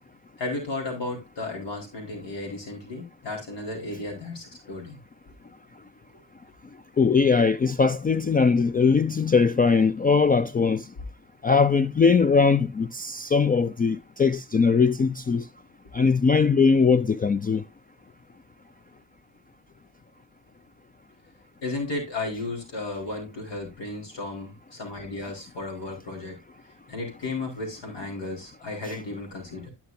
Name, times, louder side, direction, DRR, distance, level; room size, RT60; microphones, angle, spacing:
voice 1, 0.4-5.0 21.6-26.4 26.9-29.7, left 2 dB, 65° left, 4.5 m, -34 dB
voice 2, 7.0-10.8 11.4-15.4 15.9-17.6, left 5 dB, 20° left, 0.4 m, -20 dB
13.0 x 5.9 x 2.6 m
cardioid pair, 75°, 46 cm